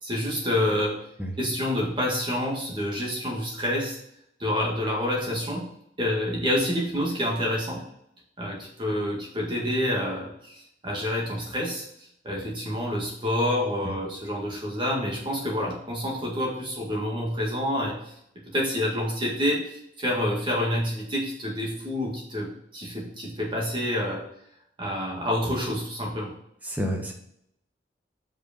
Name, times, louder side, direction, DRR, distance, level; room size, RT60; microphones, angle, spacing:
voice 1, 0.0-1.0 1.4-4.0 4.4-5.7 6.0-7.8 8.4-11.8 12.2-18.1 18.5-24.2 24.8-26.3, left 1 dB, 25° right, -2 dB, 1.9 m, -28 dB
voice 2, 26.6-27.1, equal, 10° right, 0 dB, 1.3 m, -29 dB
6.1 x 5.3 x 5.3 m, 0.72 s
head